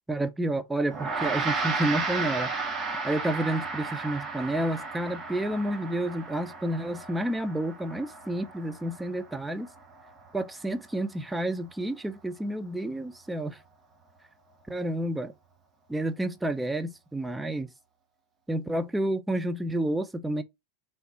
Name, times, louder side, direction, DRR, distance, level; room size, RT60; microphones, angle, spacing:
voice 1, 0.1-2.5 3.0-9.7 10.3-13.6 14.7-15.3 15.9-17.7 18.5-20.4, right 1 dB, 5° right, 0.5 m, -30 dB
Gong, 0.9-10.5, right 4 dB, 25° right, 1.0 m, -34 dB
3.2 x 2.9 x 4.4 m
figure-of-eight pair, 90°, 0 cm